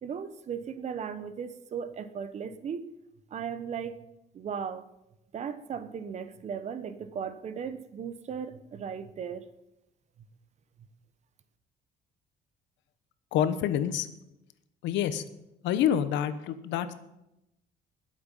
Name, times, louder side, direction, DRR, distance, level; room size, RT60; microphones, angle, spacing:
voice 1, 0.0-2.9 3.3-4.0 4.3-4.8 5.3-9.4, right 7 dB, 40° right, 12 dB, 1.0 m, -37 dB
voice 2, 13.3-14.1 14.8-15.2 15.6-16.9, left 10 dB, 90° left, 12 dB, 1.1 m, -27 dB
21.0 x 7.9 x 5.5 m, 0.88 s
cardioid pair, 155°, 18 cm